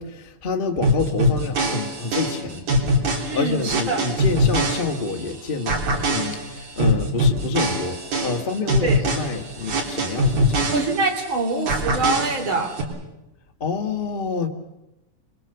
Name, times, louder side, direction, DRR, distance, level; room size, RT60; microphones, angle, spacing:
voice 1, 0.0-2.7 3.3-10.7 13.6-14.5, left 4 dB, 30° left, 4 dB, 0.9 m, -28 dB
sound 1, 0.8-5.3 5.7-11.3 11.7-12.8, equal, 60° right, 4.9 m, -23 dB
voice 2, 3.3-4.0 8.8-9.0 10.7-12.7, right 3 dB, 40° right, 4 dB, 3.7 m, -24 dB
27.0 x 23.0 x 6.9 m, 0.93 s
omnidirectional pair, 3.7 m